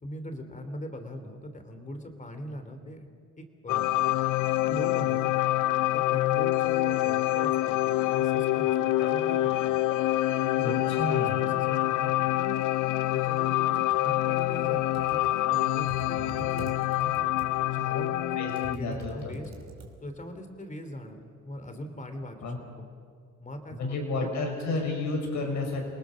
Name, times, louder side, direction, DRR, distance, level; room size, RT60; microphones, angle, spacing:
voice 1, 0.0-3.1 3.4-3.9 4.7-5.3 5.9-9.8 10.4-12.5 13.1-15.2 15.5-16.7 17.0-17.2 17.7-19.5 20.0-22.9 23.4-24.3, equal, 25° left, 7 dB, 3.2 m, -41 dB
sound 1, 3.7-18.8, left 15 dB, 90° left, 0.6 m, -26 dB
voice 2, 10.6-11.4 18.4-19.3 22.4-22.6 23.8-25.9, left 3 dB, 70° left, 2 dB, 6.0 m, -31 dB
Computer keyboard, 14.7-20.3, right 5 dB, 60° right, 3.3 m, -46 dB
28.0 x 19.5 x 6.4 m, 2.1 s
cardioid pair, 90°, 30 cm